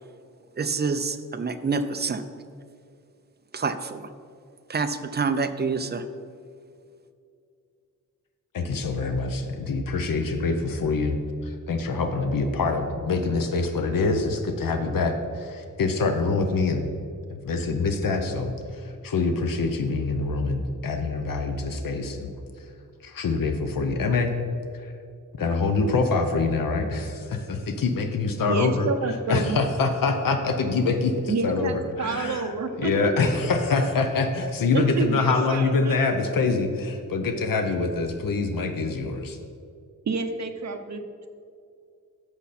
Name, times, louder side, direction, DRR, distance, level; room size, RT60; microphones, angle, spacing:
voice 1, 0.6-2.2 3.5-4.1 4.7-6.0, right 4 dB, 30° right, 9 dB, 0.5 m, -27 dB
voice 2, 8.5-11.2 11.4-16.8 17.4-22.3 22.6-22.7 23.0-24.3 24.7-24.9 25.4-39.4, left 3 dB, 80° left, 6 dB, 0.8 m, -25 dB
voice 3, 28.4-29.6 31.3-32.9 34.7-36.0 40.1-41.3, right 4 dB, 55° right, 6 dB, 0.8 m, -29 dB
11.5 x 7.1 x 4.2 m, 2.4 s
wide cardioid pair, 175°, 33 cm